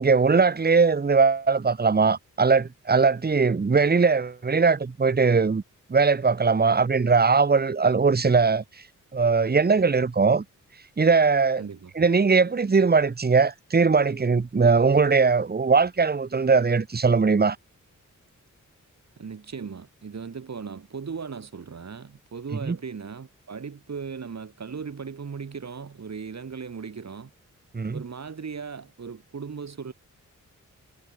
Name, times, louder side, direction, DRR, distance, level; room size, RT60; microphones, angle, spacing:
voice 1, 0.0-5.6 5.9-8.6 9.1-10.4 11.0-11.6 12.0-17.6 22.7-22.8 27.7-28.0, right 4 dB, 30° right, 1.2 m, -20 dB
voice 2, 11.6-11.9 19.2-27.3 27.9-29.9, right 5 dB, 55° right, 3.8 m, -37 dB
wide cardioid pair, 85°, 31 cm